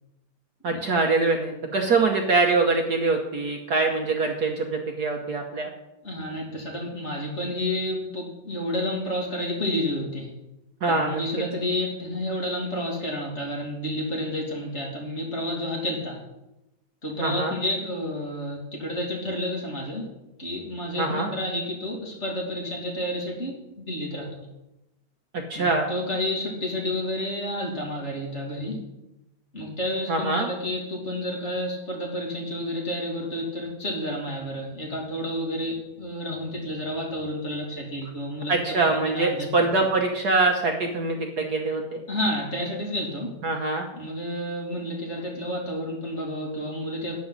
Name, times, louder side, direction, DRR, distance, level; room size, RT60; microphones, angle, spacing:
voice 1, 0.6-5.7 10.8-11.2 17.2-17.5 21.0-21.3 25.3-25.9 30.1-30.5 38.5-42.0 43.4-43.9, right 3 dB, 55° right, 2 dB, 1.5 m, -24 dB
voice 2, 6.0-10.3 10.9-16.2 17.0-20.1 20.4-24.5 25.5-28.8 29.5-38.5 38.8-39.5 42.1-43.3 43.9-47.1, left 1 dB, 35° left, -2 dB, 2.9 m, -30 dB
12.0 x 9.3 x 4.1 m, 0.94 s
omnidirectional pair, 2.2 m